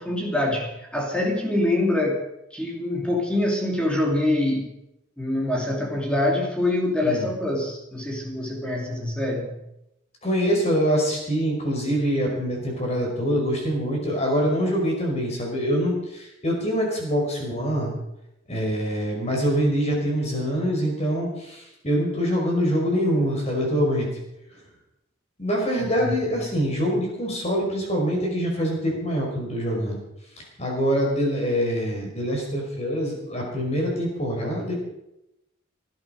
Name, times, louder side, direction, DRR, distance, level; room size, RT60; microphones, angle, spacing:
voice 1, 0.0-2.2 2.5-4.8 5.2-9.6 25.8-26.1, left 1 dB, 5° left, 0 dB, 2.9 m, -25 dB
voice 2, 10.2-17.9 18.5-24.1 25.4-30.0 30.6-34.7, equal, 30° left, 0 dB, 5.4 m, -24 dB
19.0 x 13.0 x 5.2 m, 0.85 s
head